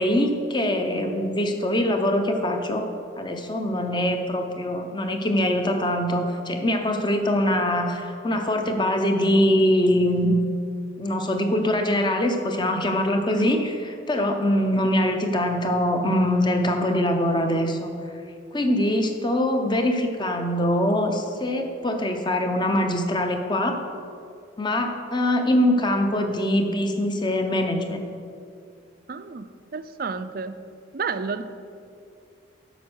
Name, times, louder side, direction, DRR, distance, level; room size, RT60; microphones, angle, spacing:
voice 1, 0.0-2.9 3.2-10.4 11.0-17.9 18.5-23.8 24.6-28.0, left 1 dB, 25° left, 5 dB, 0.8 m, -23 dB
voice 2, 13.4-13.7 25.7-25.8 29.1-29.5 29.7-30.6 30.9-31.4, right 5 dB, 50° right, 11 dB, 0.4 m, -31 dB
9.2 x 6.2 x 6.3 m, 2.4 s
head